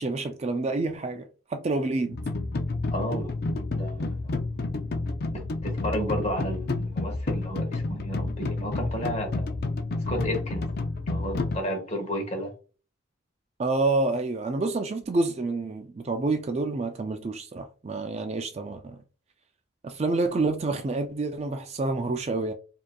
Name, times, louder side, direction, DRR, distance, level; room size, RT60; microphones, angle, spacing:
voice 1, 0.0-2.2 13.6-19.0 19.8-22.5, right 3 dB, 30° right, 0.3 m, -28 dB
sound 1, 2.1-11.6, left 3 dB, 50° left, 0.4 m, -30 dB
voice 2, 2.9-3.3 3.7-4.6 5.3-9.5 10.1-10.6 11.1-12.5, equal, 30° left, 1.4 m, -32 dB
4.8 x 2.8 x 2.2 m
head